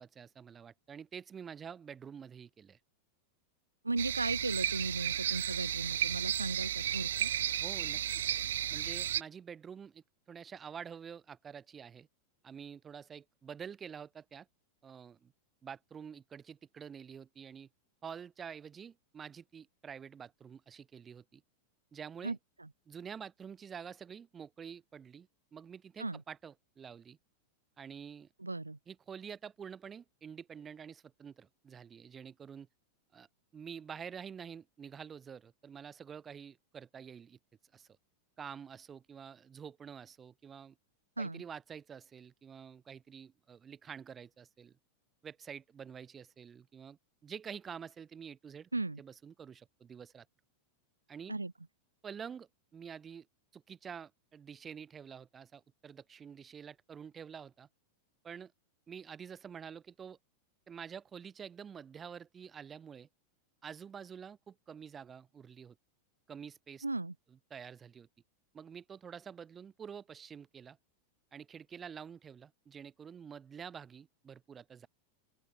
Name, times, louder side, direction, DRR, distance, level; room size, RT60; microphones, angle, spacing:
voice 1, 0.0-2.8 7.6-8.0 8.7-12.1 12.4-14.5 14.8-15.3 15.6-17.7 18.0-21.4 21.9-22.4 22.9-27.2 27.8-28.3 28.9-32.7 33.1-33.3 33.5-37.4 37.7-37.9 38.4-40.7 41.2-44.8 45.2-48.7 49.0-50.3 51.1-51.4 52.0-53.3 53.5-57.7 58.2-58.5 58.9-60.2 60.7-63.1 63.6-65.8 66.3-66.9 67.3-68.1 68.5-70.8 71.3-74.9, right 7 dB, 20° right, 7.9 m, -48 dB
voice 2, 3.8-7.3 22.2-22.7 26.0-26.2 28.4-28.8 41.2-41.4 48.7-49.0 51.3-51.5 66.8-67.1, right 2 dB, 80° right, 4.0 m, -36 dB
sound 1, 4.0-9.2, right 10 dB, 60° right, 1.0 m, -33 dB
open air
figure-of-eight pair, 90°, 0 cm